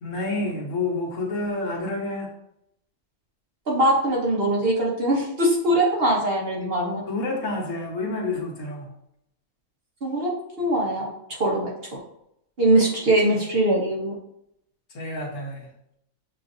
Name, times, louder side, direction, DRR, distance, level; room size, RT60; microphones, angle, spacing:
voice 1, 0.0-2.3 7.1-8.9 14.9-15.7, left 2 dB, 60° left, -1 dB, 1.2 m, -29 dB
voice 2, 3.7-7.0 10.0-11.7 12.6-14.1, right 1 dB, 50° right, -3 dB, 1.0 m, -22 dB
7.0 x 2.5 x 2.6 m, 0.78 s
omnidirectional pair, 1.5 m